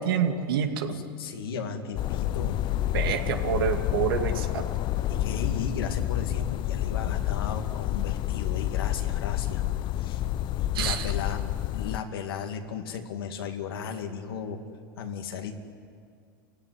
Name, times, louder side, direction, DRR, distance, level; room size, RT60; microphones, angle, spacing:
voice 1, 0.0-0.9 2.9-4.6 7.1-7.2 10.7-11.1, right 8 dB, 75° right, 6 dB, 2.3 m, -27 dB
voice 2, 0.9-2.6 5.1-9.6 10.0-10.2 10.8-11.4 11.7-14.6 15.0-15.5, left 6 dB, 80° left, 3 dB, 2.3 m, -35 dB
sound 1, 2.0-12.0, left 13 dB, 40° left, 0.6 m, -29 dB
29.5 x 16.0 x 9.9 m, 2.2 s
hypercardioid pair, 110°, 12 cm